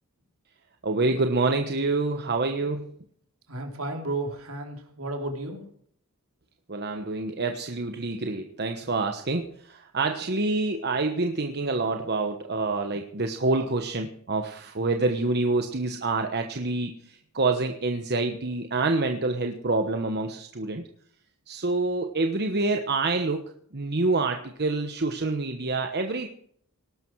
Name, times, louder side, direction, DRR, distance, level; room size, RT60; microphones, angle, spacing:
voice 1, 0.8-2.9 6.7-20.8 21.5-26.3, right 3 dB, 45° right, 5 dB, 1.2 m, -27 dB
voice 2, 3.5-5.6, right 2 dB, 70° right, 3 dB, 3.6 m, -33 dB
18.5 x 12.0 x 4.7 m, 0.63 s
head